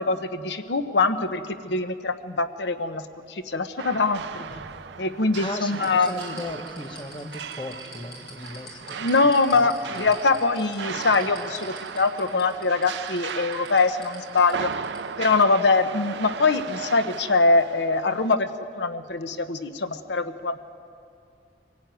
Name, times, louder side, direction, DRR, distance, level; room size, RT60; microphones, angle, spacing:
voice 1, 0.0-4.5 5.0-6.4 9.0-14.7 15.2-18.5 18.8-20.6, left 3 dB, 85° left, 10 dB, 0.9 m, -23 dB
sound 1, 3.8-18.3, right 6 dB, 85° right, 0.6 m, -37 dB
sound 2, 4.0-5.3 5.7-15.0 15.3-15.4, left 2 dB, 70° left, 6.0 m, -46 dB
voice 2, 5.4-9.7, left 1 dB, 25° left, 6 dB, 1.1 m, -37 dB
24.5 x 16.5 x 9.2 m, 2.4 s
head